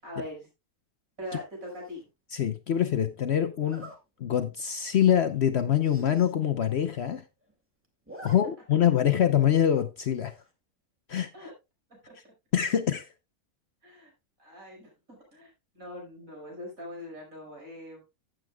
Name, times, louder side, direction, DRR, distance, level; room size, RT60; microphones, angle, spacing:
voice 1, 0.0-0.5 1.2-2.0 11.3-11.5 11.9-12.2 13.8-14.1 14.4-14.9 15.3-18.0, left 1 dB, 65° right, 5.8 m, -42 dB
Zipper (clothing), 1.6-2.0 3.6-4.0 4.5-4.7 5.0-5.1 5.4-5.5 5.7-6.3 6.7-6.8 7.0-7.5 7.8-8.4 8.7-8.8 10.1-10.5, right 1 dB, 10° right, 2.0 m, -48 dB
voice 2, 2.3-3.9 4.2-7.2 8.2-10.3 11.1-11.3 12.5-13.1, left 10 dB, 55° left, 0.8 m, -24 dB
15.5 x 7.8 x 2.2 m
omnidirectional pair, 1.5 m